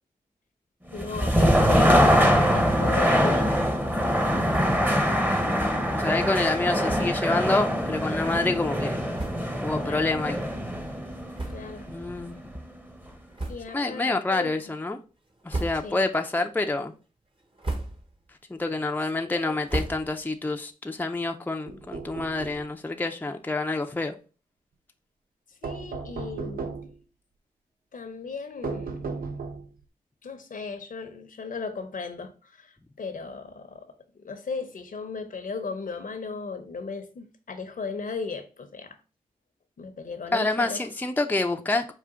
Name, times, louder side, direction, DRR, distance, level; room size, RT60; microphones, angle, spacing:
voice 1, 0.9-3.6 9.8-10.1 11.5-11.9 13.5-14.5 15.8-16.0 19.2-19.6 25.6-26.7 27.9-29.0 30.2-39.0 39.8-40.8, left 4 dB, 60° left, 0.8 m, -36 dB
sound 1, 0.9-12.8, equal, 10° right, 0.9 m, -23 dB
sound 2, 4.5-5.0 5.3-5.4 5.7-5.8 6.8-7.3 8.0-8.1 8.8-8.9 9.1-9.7 10.2-10.4 11.3-12.0 12.3-12.5 13.3-13.9 14.4-14.8 15.3-16.2 16.5-17.0 17.4-18.2 18.6-20.4, right 2 dB, 35° right, 1.1 m, -36 dB
voice 2, 5.4-9.0 9.6-10.4 11.9-12.4 13.7-15.0 15.4-16.9 18.5-24.1 40.3-41.9, left 2 dB, 10° left, 0.5 m, -27 dB
sound 3, 21.7-22.7 25.6-27.0 28.6-29.8, right 4 dB, 70° right, 0.6 m, -35 dB
4.8 x 2.4 x 3.6 m
cardioid pair, 45°, 16 cm